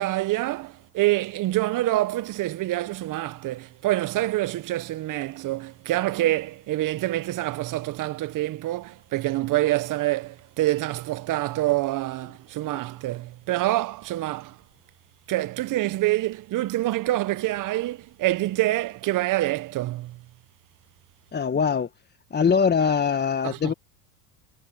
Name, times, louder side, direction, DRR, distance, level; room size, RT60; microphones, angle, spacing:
voice 1, 0.0-14.6 15.3-20.2 23.4-23.7, right 16 dB, 40° right, 1.1 m, -26 dB
voice 2, 21.3-21.9 22.3-23.7, left 6 dB, 20° left, 1.6 m, -22 dB
hypercardioid pair, 95°, 47 cm